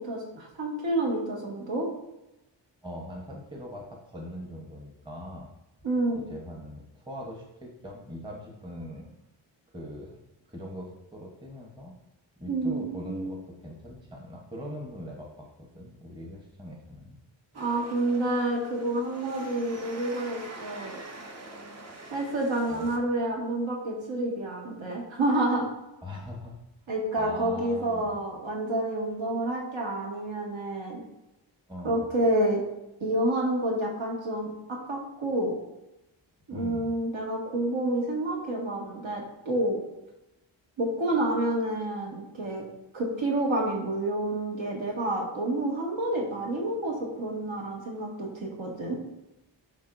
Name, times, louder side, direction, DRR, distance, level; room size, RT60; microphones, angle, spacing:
voice 1, 0.0-1.9 5.8-6.3 12.5-13.3 17.6-21.0 22.1-25.7 26.9-31.0 31.8-32.6 33.0-35.5 36.5-39.8 40.8-42.6 42.9-49.0, right 1 dB, 70° right, -3 dB, 2.0 m, -29 dB
voice 2, 2.8-5.5 6.1-9.1 9.7-10.2 10.5-12.0 12.4-15.5 15.7-17.2 22.7-22.9 26.0-26.6 27.2-28.1 31.7-32.1 36.5-36.9, equal, 10° right, -1 dB, 1.0 m, -41 dB
sound 1, 17.5-23.0, right 2 dB, 35° right, 0.8 m, -45 dB
10.5 x 3.7 x 2.6 m, 0.94 s
wide cardioid pair, 160°, 47 cm